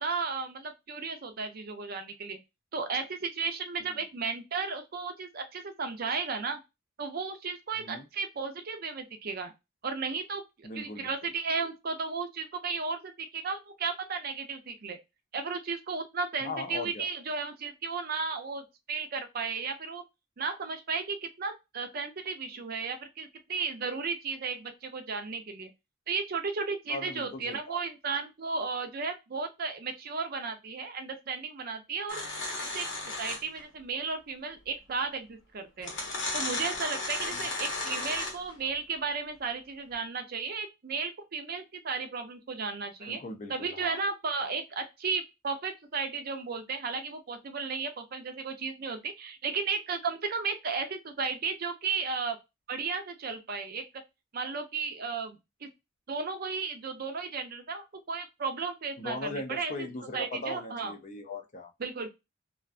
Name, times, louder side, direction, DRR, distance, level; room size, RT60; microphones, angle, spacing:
voice 1, 0.0-2.4 2.7-6.6 7.0-9.5 9.8-15.0 15.3-20.0 20.4-25.7 26.1-32.2 32.7-32.9 33.2-35.9 36.3-43.2 43.5-52.4 52.7-53.8 54.3-55.7 56.1-59.9 60.1-60.9 61.8-62.1, right 4 dB, 50° right, 0.5 m, -34 dB
voice 2, 10.6-11.1 16.4-17.1 26.9-27.8 37.2-37.5 43.0-44.0 59.0-61.7, left 2 dB, 40° left, 0.5 m, -39 dB
sound 1, 32.1-33.6 34.9-35.0 35.8-38.5, left 2 dB, 90° left, 1.0 m, -34 dB
2.5 x 2.2 x 2.3 m
head